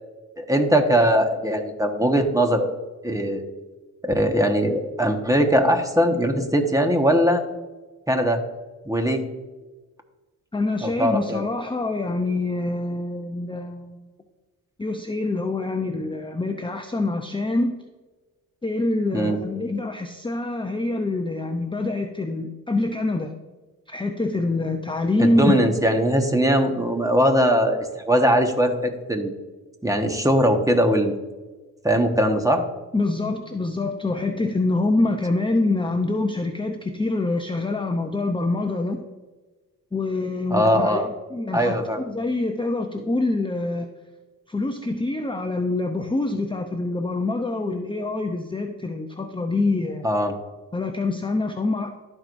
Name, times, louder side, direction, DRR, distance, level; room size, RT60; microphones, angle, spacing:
voice 1, 0.4-2.7 3.0-3.4 4.0-7.4 8.1-8.4 8.8-9.2 10.8-11.5 19.1-19.4 25.2-29.3 29.8-31.2 31.8-32.6 40.5-41.1 41.5-42.0 50.0-50.3, equal, 10° right, 4 dB, 1.4 m, -20 dB
voice 2, 10.5-14.0 14.8-17.8 18.6-23.3 23.9-25.5 32.9-39.0 39.9-43.9 44.5-50.1 50.7-52.0, left 2 dB, 15° left, 5 dB, 0.7 m, -25 dB
12.5 x 4.8 x 2.6 m, 1.3 s
supercardioid pair, 45°, 38 cm